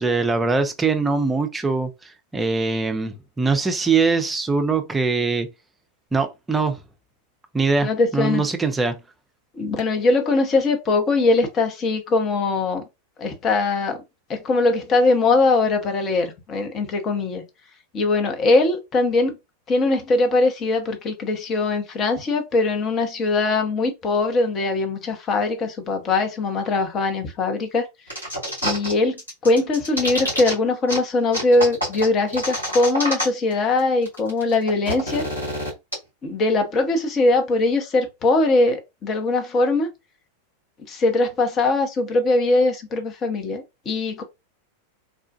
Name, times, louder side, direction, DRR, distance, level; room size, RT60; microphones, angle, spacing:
voice 1, 0.0-1.9 2.3-5.5 6.1-6.8 7.5-9.0, right 4 dB, 10° right, 0.6 m, -22 dB
voice 2, 7.8-8.4 9.6-12.8 13.2-14.0 14.3-17.4 17.9-19.3 19.7-27.9 28.6-29.2 29.4-35.2 36.2-39.9 40.9-44.2, left 3 dB, 30° left, 0.9 m, -21 dB
sound 1, 28.1-28.9 29.2-30.5 30.9-31.0 31.3-33.5 33.8-33.9 34.1-35.9, equal, 85° left, 2.0 m, -27 dB
3.7 x 2.4 x 2.4 m
figure-of-eight pair, 90°, 0 cm